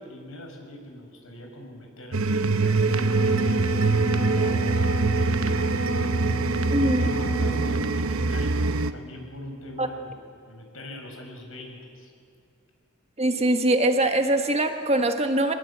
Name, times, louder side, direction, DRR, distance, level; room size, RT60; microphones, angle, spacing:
voice 1, 0.0-6.0 6.8-10.2 10.5-12.1, left 1 dB, 75° left, 3 dB, 5.2 m, -42 dB
sound 1, 2.1-8.9, right 3 dB, 85° right, 0.9 m, -24 dB
Wind instrument woodwind instrument, 2.6-7.8, right 2 dB, 50° left, 3.4 m, -33 dB
voice 2, 6.7-7.1 9.8-9.9 13.2-15.5, right 1 dB, 30° right, 6 dB, 1.4 m, -22 dB
24.0 x 20.0 x 8.0 m, 2.4 s
head